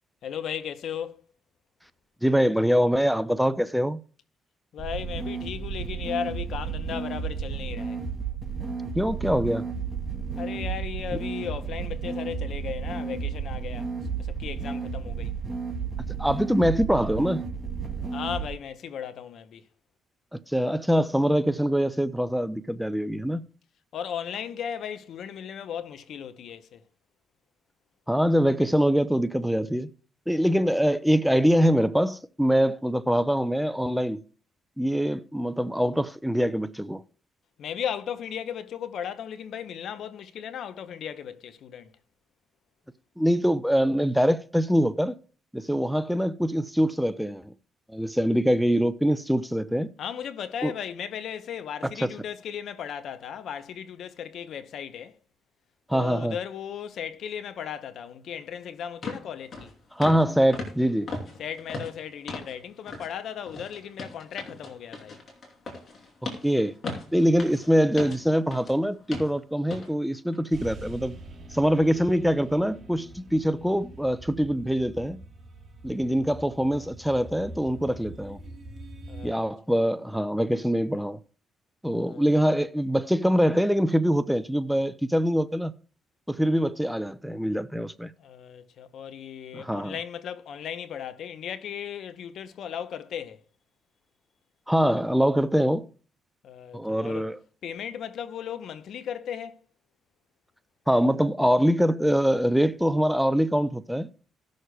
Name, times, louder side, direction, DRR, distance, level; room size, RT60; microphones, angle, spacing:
voice 1, 0.2-1.2 4.7-8.0 10.4-13.9 14.2-15.3 18.1-19.6 23.9-26.8 30.4-30.5 37.6-41.9 50.0-55.1 55.9-59.7 61.4-65.2 79.1-79.5 81.9-82.2 88.2-93.4 96.4-97.3 97.6-99.6, left 8 dB, 70° left, 0.7 m, -36 dB
voice 2, 2.2-4.0 8.9-9.7 11.1-11.2 16.2-17.4 20.3-23.4 28.1-29.9 30.3-34.2 34.8-37.0 43.2-45.2 45.5-47.5 47.9-49.9 50.6-50.7 52.0-52.1 55.9-56.4 60.0-61.1 66.4-66.7 67.1-71.2 71.5-75.2 75.8-78.4 79.2-81.2 81.8-85.7 86.3-88.1 89.5-89.9 94.7-95.9 96.7-97.4 100.9-104.1, equal, ahead, 0.5 m, -24 dB
sound 1, 4.8-18.5, right 5 dB, 15° right, 2.4 m, -32 dB
sound 2, 58.4-58.5 59.0-59.2 59.5-59.7 60.0-60.3 60.5-62.6 62.9-63.1 63.5-68.8 69.1-69.3 69.7-69.9 70.3-70.5, left 3 dB, 45° left, 3.0 m, -37 dB
sound 3, 70.5-79.3, right 2 dB, 35° right, 2.8 m, -44 dB
18.5 x 6.4 x 2.2 m
cardioid pair, 90°, 0 cm